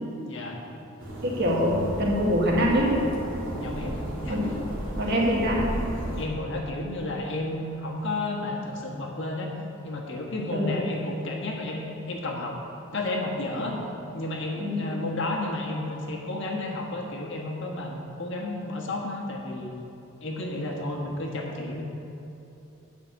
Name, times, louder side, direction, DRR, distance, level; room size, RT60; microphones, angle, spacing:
voice 1, 0.2-0.6 3.6-4.4 6.2-9.5 9.8-12.6 12.9-13.8 14.1-19.7 20.2-21.9, left 2 dB, 55° left, -1 dB, 1.5 m, -32 dB
sound 1, 1.0-6.3, equal, 70° right, 2.4 m, -34 dB
voice 2, 1.2-3.0 4.3-4.6 5.0-5.6 10.5-10.8 14.6-14.9, equal, 50° right, -3 dB, 1.9 m, -24 dB
9.0 x 6.2 x 8.1 m, 2.9 s
head